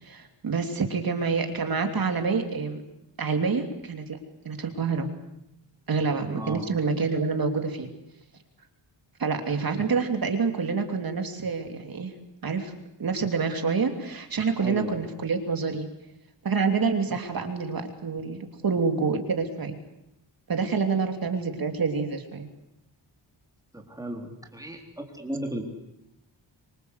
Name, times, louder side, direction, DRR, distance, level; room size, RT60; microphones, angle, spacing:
voice 1, 0.0-2.8 3.2-4.2 4.4-5.1 5.9-7.9 9.2-12.1 12.4-12.7 13.0-15.9 16.4-19.8 20.5-22.5, right 5 dB, 50° right, 5 dB, 3.1 m, -27 dB
voice 2, 6.3-6.7 14.6-15.0 23.7-25.6, right 1 dB, 10° right, 2 dB, 3.8 m, -35 dB
25.5 x 24.5 x 8.2 m, 0.84 s
wide cardioid pair, 165°, 45 cm